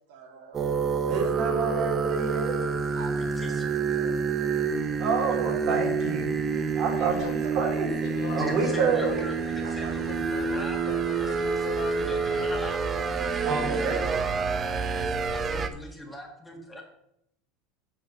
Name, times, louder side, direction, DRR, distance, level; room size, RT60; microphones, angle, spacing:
voice 1, 0.1-0.7 2.9-4.6 4.9-5.0 6.9-7.7 8.6-8.8 9.6-10.1 13.3-14.3, right 4 dB, 85° right, 0 dB, 3.0 m, -41 dB
sound 1, 0.5-15.7, right 5 dB, 25° right, 0.7 m, -28 dB
voice 2, 1.1-2.5 5.0-6.3 6.8-9.2 13.4-14.0, right 5 dB, 45° right, 3 dB, 2.5 m, -28 dB
voice 3, 3.2-3.6 8.4-12.8 15.3-16.8, equal, 10° left, 2 dB, 1.7 m, -41 dB
sound 2, 7.0-12.6, left 9 dB, 65° left, 1.0 m, -41 dB
7.4 x 5.5 x 6.0 m, 0.76 s
supercardioid pair, 140°, 0 cm